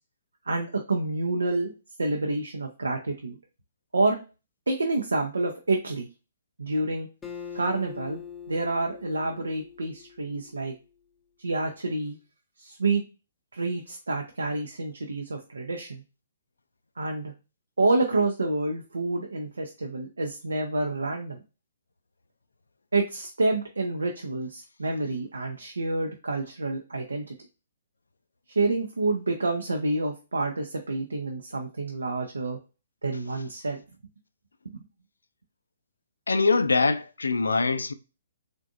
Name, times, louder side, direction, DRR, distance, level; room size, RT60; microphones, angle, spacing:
voice 1, 0.5-1.7 2.0-3.4 3.9-4.2 4.7-6.1 6.6-7.1 7.5-8.2 8.5-10.7 11.4-12.2 12.6-13.0 13.5-16.0 17.0-17.3 17.8-21.4 22.9-27.4 28.5-32.6 33.0-33.8 34.7-34.8, right 2 dB, 70° right, 0.6 m, -28 dB
Acoustic guitar, 7.2-10.6, left 8 dB, 10° left, 0.6 m, -42 dB
voice 2, 36.3-37.9, left 4 dB, 70° left, 0.4 m, -23 dB
3.9 x 3.4 x 2.4 m
figure-of-eight pair, 125°, 0 cm